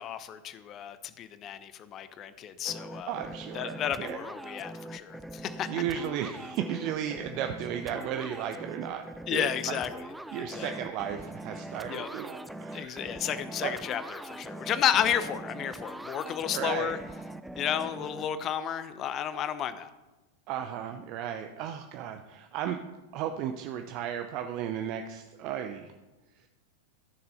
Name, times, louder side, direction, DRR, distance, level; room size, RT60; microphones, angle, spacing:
voice 1, 0.0-3.1 3.5-5.8 9.3-10.0 10.4-10.7 11.9-12.1 12.7-17.0 17.6-19.9, left 9 dB, 30° left, 13 dB, 0.8 m, -32 dB
sound 1, 2.7-18.3, right 1 dB, 5° right, 0.5 m, -42 dB
voice 2, 3.1-4.2 5.7-9.0 9.3-9.8 10.3-13.0 13.6-13.7 16.5-17.0 20.5-22.8 23.1-25.9, right 9 dB, 40° right, 6 dB, 0.7 m, -34 dB
14.0 x 6.8 x 4.3 m, 1.1 s
figure-of-eight pair, 90°, 0 cm